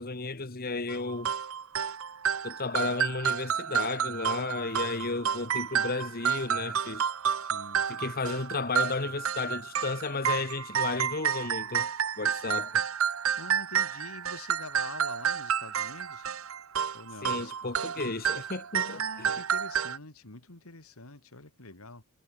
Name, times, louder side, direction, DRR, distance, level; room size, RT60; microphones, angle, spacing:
voice 1, 0.0-1.3 2.4-7.1 7.9-11.9 12.2-12.8 17.2-19.3, left 3 dB, 45° left, 1.5 m, -33 dB
sound 1, 0.9-20.0, right 8 dB, 70° right, 0.9 m, -30 dB
voice 2, 7.4-7.9 13.3-16.3 16.9-17.5 18.0-18.2 18.9-22.0, left 3 dB, 80° left, 2.8 m, -46 dB
head